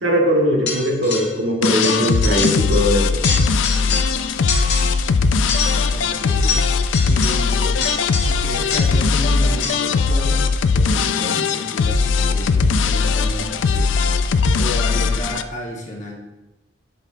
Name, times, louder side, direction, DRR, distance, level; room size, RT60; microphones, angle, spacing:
voice 1, 0.0-3.2, equal, 80° right, 0 dB, 1.3 m, -20 dB
sound 1, 0.7-1.4 1.6-2.9 3.1-4.2 4.5-5.1 5.5-9.1 9.6-10.0, left 5 dB, 65° left, 1.4 m, -27 dB
sound 2, 1.6-15.4, left 4 dB, 80° left, 0.4 m, -19 dB
voice 2, 5.9-6.8 7.1-7.8 8.3-10.4 10.7-14.1 14.6-16.1, left 1 dB, 40° left, -1 dB, 1.2 m, -32 dB
10.5 x 4.3 x 2.5 m, 1.0 s
head